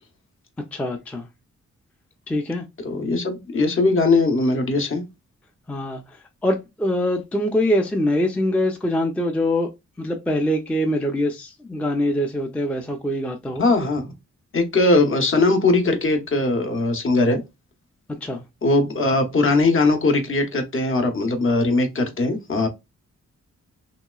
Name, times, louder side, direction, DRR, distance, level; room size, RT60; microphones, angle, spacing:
voice 1, 0.7-1.3 2.3-2.6 5.7-6.0 6.4-9.7 10.0-13.6 18.1-18.4, left 1 dB, 5° left, 0.3 m, -23 dB
voice 2, 2.8-5.0 13.6-14.1 14.5-17.4 18.6-22.7, left 2 dB, 45° left, 0.7 m, -20 dB
3.0 x 2.9 x 2.2 m
wide cardioid pair, 115°, 30 cm